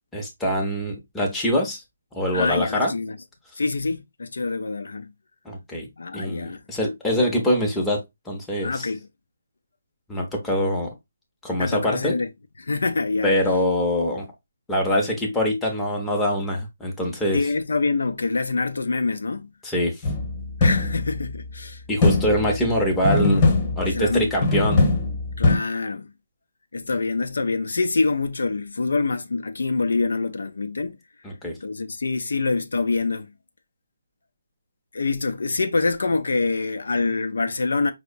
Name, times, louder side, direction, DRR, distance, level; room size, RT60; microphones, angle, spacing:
voice 1, 0.1-1.8 2.1-2.9 5.4-5.9 6.1-8.9 10.1-10.9 11.4-12.2 13.2-14.3 14.7-17.4 19.6-20.1 21.9-23.5 23.8-24.8 31.2-31.6, equal, 5° left, 0.7 m, -24 dB
voice 2, 2.3-3.2 3.6-5.1 6.0-6.6 8.6-9.0 11.6-12.3 12.6-13.3 17.3-19.5 20.6-21.8 23.8-24.3 25.4-26.1 26.7-31.0 31.6-33.3 34.9-37.9, left 3 dB, 80° left, 0.4 m, -25 dB
sound 1, 20.0-21.3 22.0-22.7 23.0-24.2 24.4-25.6, left 3 dB, 25° left, 1.0 m, -21 dB
4.6 x 2.0 x 2.5 m
hypercardioid pair, 160°, 0 cm